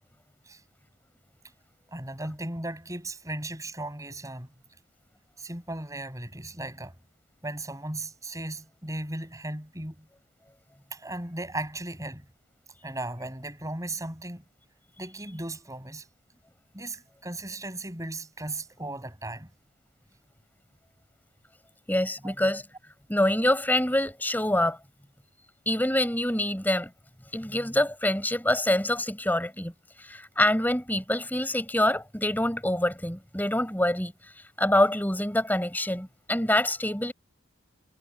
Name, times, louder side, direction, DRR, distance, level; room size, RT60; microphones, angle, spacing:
voice 1, 1.9-4.5 5.4-6.9 7.4-10.1 10.9-12.3 12.8-14.4 15.0-16.1 16.7-19.5 22.2-22.3, right 2 dB, 15° right, 7.7 m, -36 dB
voice 2, 21.9-22.6 23.1-24.8 25.7-26.9 27.3-29.7 30.0-34.1 34.6-37.1, left 1 dB, 10° left, 4.7 m, -25 dB
head